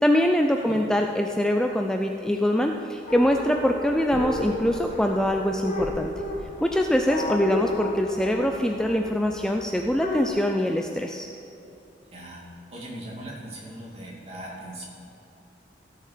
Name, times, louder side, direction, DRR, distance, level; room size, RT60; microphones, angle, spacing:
voice 1, 0.0-6.1 6.6-11.3, equal, 5° left, 3 dB, 0.4 m, -23 dB
sound 1, 3.1-10.3, left 1 dB, 45° left, 1.7 m, -33 dB
voice 2, 12.1-12.4 12.7-14.8, right 1 dB, 35° right, -4 dB, 2.5 m, -39 dB
16.0 x 6.6 x 5.0 m, 2.9 s
head